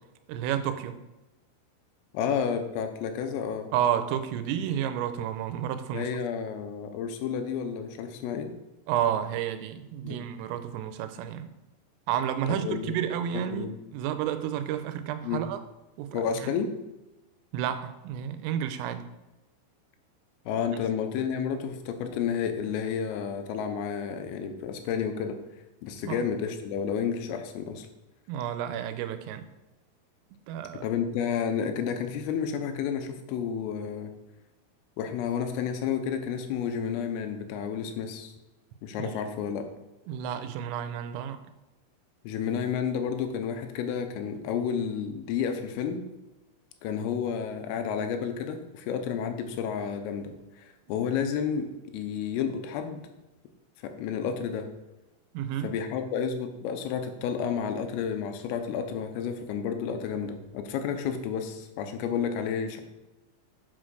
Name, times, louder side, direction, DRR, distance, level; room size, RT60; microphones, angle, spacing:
voice 1, 0.3-1.0 3.7-6.1 8.9-11.5 12.1-15.6 16.0-16.5 17.5-19.0 26.0-26.2 28.3-29.5 30.5-30.9 39.0-39.1 40.1-41.4 55.3-55.7, right 10 dB, 90° right, 10 dB, 3.3 m, -31 dB
voice 2, 2.1-3.7 5.9-8.5 10.0-10.2 12.5-12.9 13.5-13.8 15.2-15.5 16.1-16.7 20.5-25.4 25.8-27.9 30.8-34.1 35.0-38.3 38.8-39.7 42.3-46.0 46.8-53.0 53.8-54.7 55.6-62.8, left 7 dB, 80° left, 7 dB, 3.6 m, -31 dB
8.3 x 6.3 x 6.3 m, 1.0 s
omnidirectional pair, 5.9 m